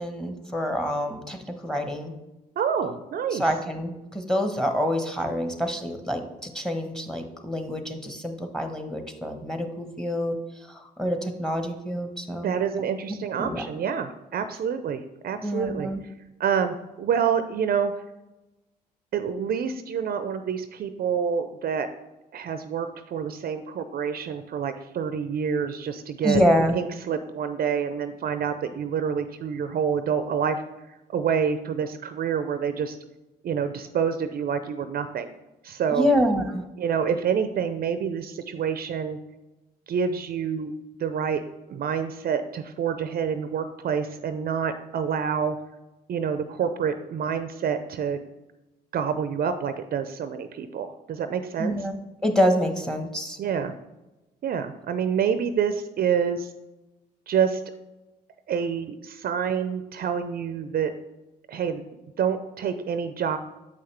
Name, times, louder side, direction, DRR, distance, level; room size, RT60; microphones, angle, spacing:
voice 1, 0.0-1.4 1.6-2.1 3.3-10.4 11.0-12.5 13.4-13.7 15.4-16.0 26.2-26.7 35.9-36.6 51.6-51.9 52.2-53.4, equal, 5° left, 6 dB, 1.2 m, -26 dB
voice 2, 2.6-3.5 12.4-15.9 16.4-17.9 19.1-21.9 22.3-26.4 26.7-30.6 31.1-33.0 33.4-35.3 35.6-36.1 36.8-39.2 39.9-40.7 41.0-41.4 41.7-45.6 46.1-48.2 48.9-51.9 53.4-53.7 54.4-56.5 57.3-57.6 58.5-60.9 61.5-61.8 62.2-63.4, right 7 dB, 50° right, 10 dB, 0.5 m, -27 dB
7.5 x 5.6 x 3.3 m, 1.0 s
hypercardioid pair, 55°, 20 cm